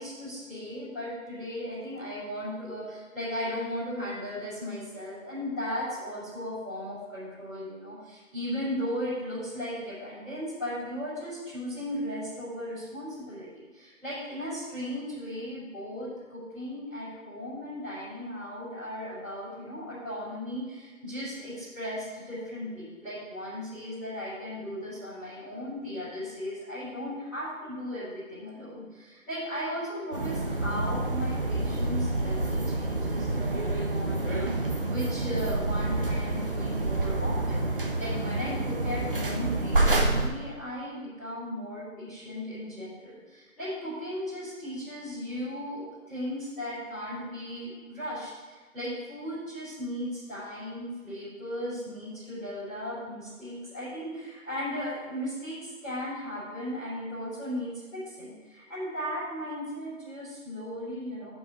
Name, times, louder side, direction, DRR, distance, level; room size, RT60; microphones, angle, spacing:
voice 1, 0.0-61.3, equal, 5° left, -22 dB, 2.7 m, -36 dB
sound 1, 30.1-40.3, right 2 dB, 40° right, 0.9 m, -28 dB
7.0 x 5.6 x 7.2 m, 1.4 s
figure-of-eight pair, 175°, 41 cm